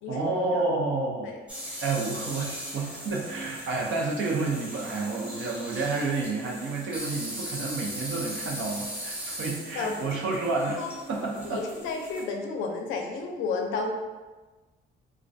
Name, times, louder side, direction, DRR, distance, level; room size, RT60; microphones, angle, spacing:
voice 1, 0.1-1.3 1.8-11.7, right 3 dB, 75° right, -1 dB, 0.6 m, -30 dB
sound 1, 1.5-12.2, equal, 5° right, 0.6 m, -39 dB
voice 2, 9.8-10.1 10.8-10.9 11.5-13.9, left 4 dB, 85° left, 2 dB, 0.4 m, -31 dB
2.2 x 2.2 x 2.5 m, 1.2 s
cardioid pair, 90°, 20 cm